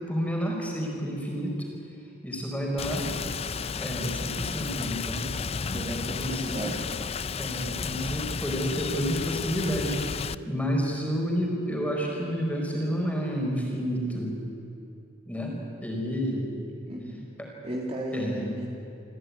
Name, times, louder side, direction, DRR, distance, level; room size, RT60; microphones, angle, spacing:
voice 1, 0.1-1.6 2.2-3.2 3.8-5.3 5.9-6.7 7.3-10.0 10.5-14.3 15.3-16.5 17.4-17.5 18.1-18.5, equal, 5° left, -1 dB, 4.6 m, -30 dB
Rain, 2.8-10.3, left 5 dB, 30° left, 0.4 m, -33 dB
voice 2, 5.7-7.1 16.8-17.2 17.6-18.7, equal, 30° right, -2 dB, 2.4 m, -34 dB
26.0 x 15.0 x 9.6 m, 2.8 s
head